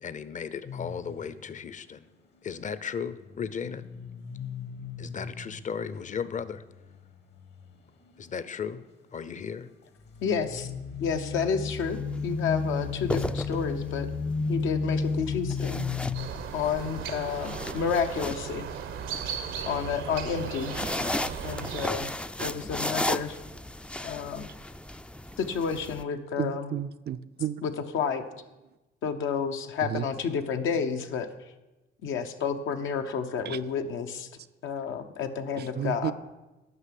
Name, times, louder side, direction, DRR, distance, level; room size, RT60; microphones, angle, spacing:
voice 1, 0.0-2.1 2.4-3.8 5.0-6.6 8.2-8.8 9.1-9.7, left 7 dB, 40° left, 0.6 m, -35 dB
sound 1, 0.6-1.6 3.1-7.7 8.0-8.5 10.0-16.3, left 4 dB, 60° left, 1.3 m, -34 dB
voice 2, 10.2-10.7 11.0-14.1 14.5-15.9 16.5-18.7 19.6-20.8 21.4-22.1 22.4-23.4 24.0-24.5 25.4-26.7 27.6-28.2 29.0-31.3 32.0-34.3 34.6-36.1, left 6 dB, 80° left, 0.9 m, -30 dB
sound 2, 11.7-12.0 12.9-14.0 15.5-16.7 17.1-19.2 20.4-26.0, left 1 dB, 5° left, 0.3 m, -34 dB
sound 3, 16.1-21.9, right 7 dB, 85° right, 1.0 m, -36 dB
voice 3, 26.4-27.6 29.8-30.1 33.4-33.6 35.6-36.1, right 10 dB, 55° right, 0.5 m, -32 dB
9.7 x 5.9 x 7.6 m
cardioid pair, 90°, 20 cm